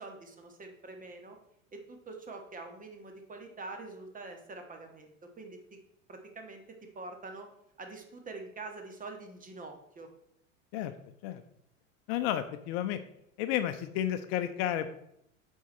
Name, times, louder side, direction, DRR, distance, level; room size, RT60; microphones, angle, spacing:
voice 1, 0.0-1.4 1.7-5.8 6.1-7.5 7.8-10.1, right 3 dB, 20° right, 4 dB, 1.5 m, -45 dB
voice 2, 12.1-13.0 13.4-14.9, left 11 dB, 50° left, 10 dB, 0.8 m, -31 dB
8.3 x 4.7 x 4.3 m, 0.74 s
hypercardioid pair, 90°, 40 cm